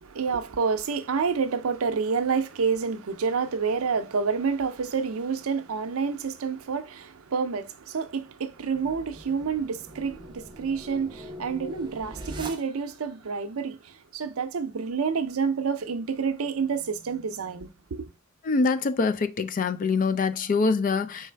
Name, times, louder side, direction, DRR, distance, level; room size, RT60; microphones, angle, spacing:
voice 1, 0.0-18.1, right 5 dB, 75° right, 0.6 m, -28 dB
sound 1, 8.5-13.1, equal, 20° right, 0.7 m, -41 dB
voice 2, 18.4-21.3, left 4 dB, 40° left, 0.4 m, -24 dB
4.6 x 3.2 x 3.3 m
head